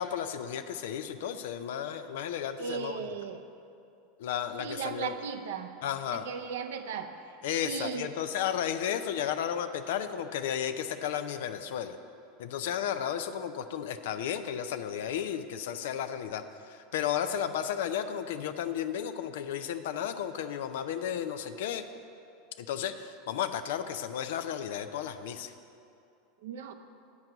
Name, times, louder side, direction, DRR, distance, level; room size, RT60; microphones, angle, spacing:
voice 1, 0.0-3.0 4.2-5.1 5.8-6.3 7.4-12.0 12.4-21.8 22.6-25.5, left 9 dB, 75° left, 9 dB, 0.5 m, -33 dB
voice 2, 2.6-3.4 4.6-5.7 6.1-7.4 7.6-8.1 26.4-26.7, right 6 dB, 75° right, 7 dB, 0.6 m, -36 dB
9.5 x 4.7 x 7.7 m, 2.6 s
hypercardioid pair, 95°, 0 cm